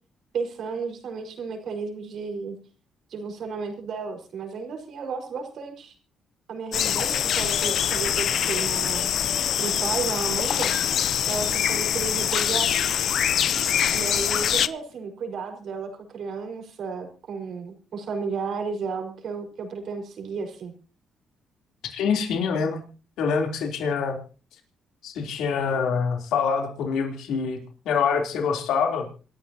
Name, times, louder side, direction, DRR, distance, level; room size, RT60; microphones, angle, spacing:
voice 1, 0.3-2.6 3.1-5.9 6.5-9.1 9.6-10.7 11.3-12.8 13.9-20.7, right 5 dB, 65° right, 4 dB, 5.1 m, -33 dB
sound 1, 6.7-14.7, left 9 dB, 65° left, 0.7 m, -24 dB
voice 2, 21.9-22.8 23.2-24.2 25.0-27.6 27.8-29.1, left 6 dB, 85° left, 2 dB, 3.5 m, -25 dB
27.0 x 13.0 x 2.9 m, 0.36 s
cardioid pair, 90°, 0 cm